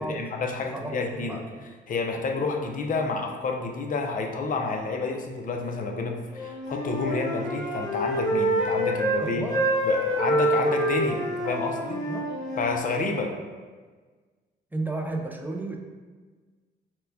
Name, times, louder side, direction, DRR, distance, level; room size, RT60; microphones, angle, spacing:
voice 1, 0.0-1.4 1.9-9.5 9.8-12.0 12.6-13.4, left 3 dB, 45° left, 2 dB, 0.5 m, -29 dB
voice 2, 0.7-1.4 9.2-9.7 12.1-12.3 14.7-15.8, right 2 dB, 10° right, 1 dB, 0.4 m, -33 dB
Wind instrument woodwind instrument, 6.3-9.2 9.5-12.8, right 1 dB, 20° left, 1.3 m, -27 dB
4.4 x 2.1 x 2.6 m, 1.4 s
cardioid pair, 90°, 20 cm